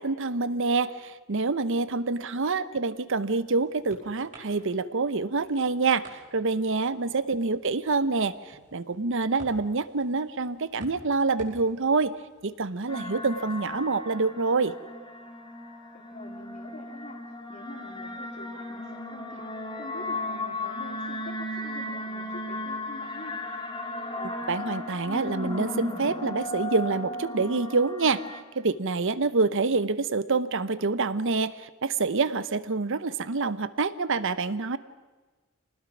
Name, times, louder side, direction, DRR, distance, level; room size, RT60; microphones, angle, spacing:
voice 1, 0.0-12.1 12.4-14.7 24.2-28.2 28.5-34.8, right 3 dB, 60° right, 15 dB, 0.8 m, -27 dB
sound 1, 3.1-13.9, right 1 dB, 35° right, 4.9 m, -54 dB
sound 2, 12.9-28.4, left 1 dB, 25° left, 2.3 m, -36 dB
voice 2, 15.9-17.2 17.5-19.5 19.7-23.4, left 2 dB, 40° left, -3 dB, 2.5 m, -45 dB
25.0 x 19.5 x 6.1 m, 1.3 s
head